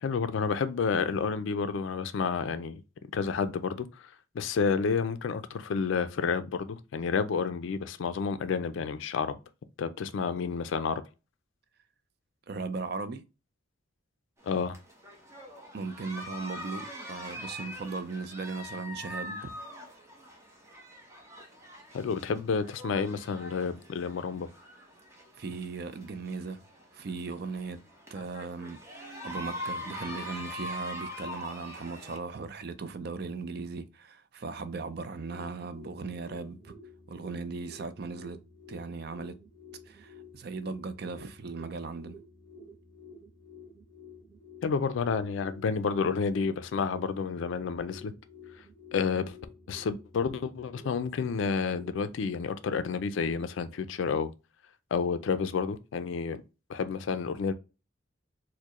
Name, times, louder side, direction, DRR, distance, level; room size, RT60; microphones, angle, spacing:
voice 1, 0.0-2.8 3.1-9.4 9.8-11.0 14.4-14.7 21.9-24.5 44.6-48.1 48.9-49.4 49.7-54.3 54.9-56.4 56.7-57.5, left 5 dB, 70° left, 0.4 m, -30 dB
voice 2, 12.5-13.2 15.7-19.5 25.3-26.6 26.9-27.8 28.1-28.8 29.2-36.7 37.1-38.4 38.7-39.4 39.9-42.2, right 4 dB, 50° right, 0.4 m, -38 dB
sound 1, 14.4-32.2, left 1 dB, 15° right, 0.8 m, -43 dB
sound 2, 34.9-53.3, left 2 dB, 10° left, 1.9 m, -51 dB
4.5 x 2.1 x 2.9 m
head